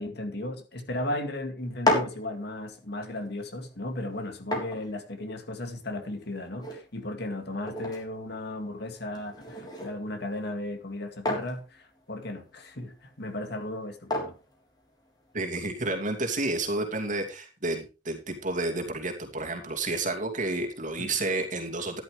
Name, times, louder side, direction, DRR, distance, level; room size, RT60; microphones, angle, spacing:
voice 1, 0.0-14.3 21.0-21.1, left 1 dB, 65° left, 6 dB, 2.3 m, -35 dB
sound 1, 1.6-15.5, left 2 dB, 25° left, 3.7 m, -36 dB
voice 2, 15.3-22.0, right 2 dB, 45° right, 2 dB, 2.7 m, -30 dB
14.0 x 10.5 x 3.3 m, 0.32 s
head